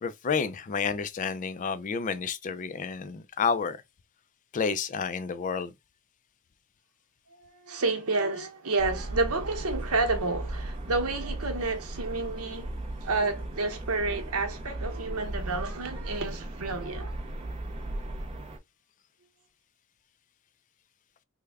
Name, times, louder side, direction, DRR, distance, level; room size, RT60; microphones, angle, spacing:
voice 1, 0.0-3.8 4.5-5.7, left 5 dB, 35° left, 0.3 m, -30 dB
voice 2, 7.3-12.7 13.0-17.2, right 3 dB, 75° right, 0.9 m, -30 dB
sound 1, 8.8-18.6, right 1 dB, 25° right, 0.5 m, -36 dB
3.4 x 2.1 x 3.4 m
head